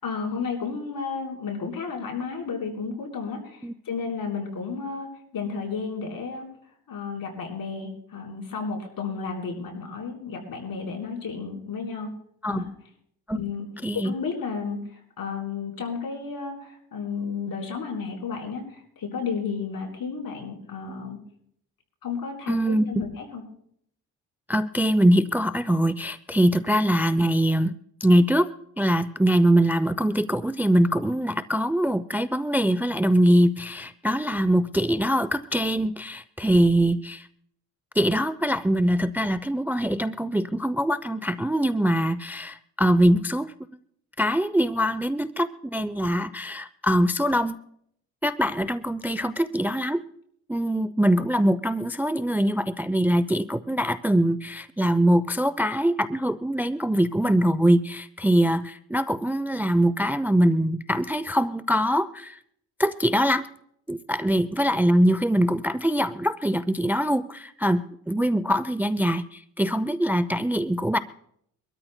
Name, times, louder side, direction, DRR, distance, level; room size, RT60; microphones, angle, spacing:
voice 1, 0.0-3.6 3.9-6.5 6.9-12.1 12.5-12.7 13.3-13.7 13.9-14.8 15.2-21.2 22.0-23.4, left 5 dB, 65° left, 2 dB, 4.2 m, -32 dB
voice 2, 13.8-14.1 22.5-22.9 24.5-27.7 28.0-28.5 28.8-37.3 38.0-43.5 44.2-47.6 48.2-50.0 50.5-62.4 62.8-63.4 63.9-71.0, equal, 5° right, 15 dB, 0.5 m, -23 dB
24.0 x 13.0 x 2.2 m, 0.69 s
supercardioid pair, 65°, 38 cm